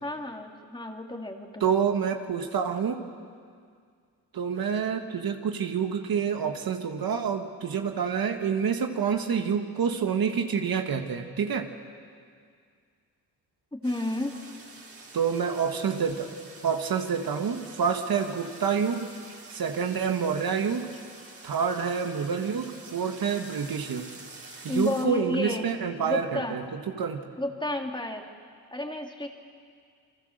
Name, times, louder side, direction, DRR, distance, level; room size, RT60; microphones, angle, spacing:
voice 1, 0.0-1.7 13.7-14.4 24.7-25.7 26.0-26.6 27.4-28.3 28.7-29.3, left 1 dB, 10° left, 2 dB, 2.9 m, -31 dB
voice 2, 1.6-3.0 4.3-11.7 15.1-16.3 16.6-19.1 19.5-20.9 21.4-24.1 24.6-27.2, right 6 dB, 60° right, 5 dB, 1.9 m, -28 dB
sound 1, 13.8-25.1, right 3 dB, 35° right, 3.8 m, -47 dB
29.5 x 23.0 x 6.7 m, 2.1 s
cardioid pair, 70°, 39 cm